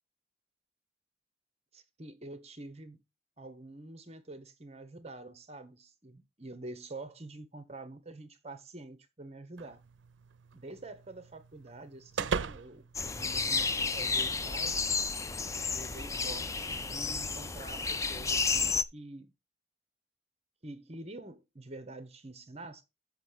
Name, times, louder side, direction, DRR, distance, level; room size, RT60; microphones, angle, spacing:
voice 1, 1.7-3.0 3.4-9.8 10.5-14.8 15.7-19.3 20.6-22.8, right 2 dB, 35° right, 1.0 m, -47 dB
sound 1, 9.6-14.0, right 5 dB, 80° right, 0.5 m, -40 dB
sound 2, 12.9-18.8, left 4 dB, 15° left, 0.4 m, -32 dB
7.2 x 5.7 x 6.2 m
head